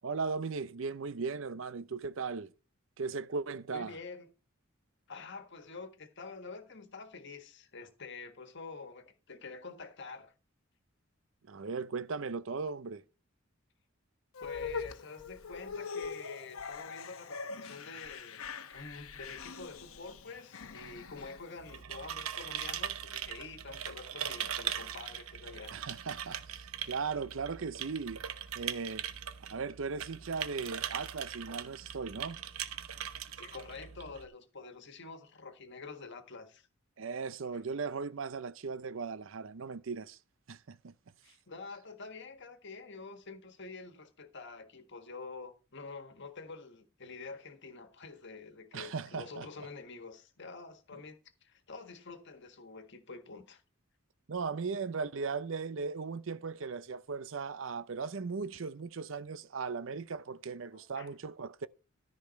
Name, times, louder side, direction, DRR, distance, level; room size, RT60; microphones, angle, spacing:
voice 1, 0.0-2.5 3.0-3.9 11.5-13.0 25.7-28.2 28.6-29.1 29.5-32.4 37.0-40.2 40.5-40.9 48.7-49.5 50.9-51.0 54.3-61.7, right 5 dB, 65° right, 0.6 m, -37 dB
voice 2, 3.7-4.3 5.1-10.3 14.4-25.7 33.2-36.7 41.2-53.6 60.7-61.1, left 4 dB, 55° left, 1.6 m, -47 dB
sound 1, 14.3-21.8, left 5 dB, 85° left, 0.9 m, -43 dB
sound 2, 21.6-34.3, right 9 dB, 90° right, 0.9 m, -40 dB
13.5 x 5.3 x 5.3 m
head